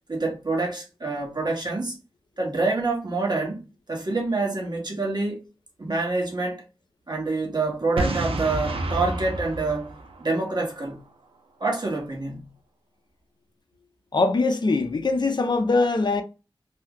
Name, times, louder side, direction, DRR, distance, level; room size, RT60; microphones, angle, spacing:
voice 1, 0.1-2.0 2.4-5.4 5.8-6.6 7.1-9.9 10.2-11.0 11.6-12.5, right 3 dB, 50° right, 1.2 m, -27 dB
Boom, 8.0-10.8, right 2 dB, 80° right, 0.5 m, -29 dB
voice 2, 14.1-16.2, left 3 dB, 50° left, 0.5 m, -22 dB
2.7 x 2.2 x 3.5 m
wide cardioid pair, 50°, 9 cm